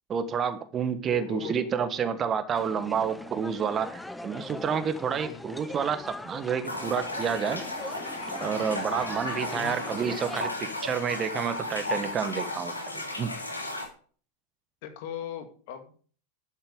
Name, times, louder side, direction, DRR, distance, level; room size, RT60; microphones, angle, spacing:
voice 1, 0.1-7.6 8.4-12.7 13.1-13.3, right 7 dB, 25° right, 12 dB, 1.4 m, -29 dB
voice 2, 1.1-1.6 5.2-5.6 9.5-9.8 14.8-16.0, left 9 dB, 50° left, 7 dB, 2.3 m, -39 dB
sound 1, 2.6-10.5, left 1 dB, 5° left, 0.7 m, -41 dB
sound 2, 6.6-13.9, left 1 dB, 80° left, 3.0 m, -34 dB
12.0 x 8.9 x 5.3 m, 0.44 s
figure-of-eight pair, 90°, 0 cm